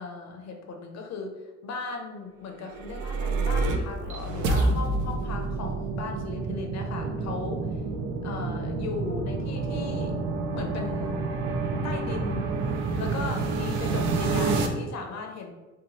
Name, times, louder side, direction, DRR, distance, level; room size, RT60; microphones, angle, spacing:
voice 1, 0.0-7.8 8.2-10.2 10.5-11.2 11.8-12.5 13.0-15.5, left 4 dB, 60° left, 2 dB, 0.5 m, -37 dB
sound 1, 2.6-14.7, right 3 dB, 75° right, 0.5 m, -28 dB
2.8 x 2.2 x 2.9 m, 1.1 s
cardioid pair, 90°, 30 cm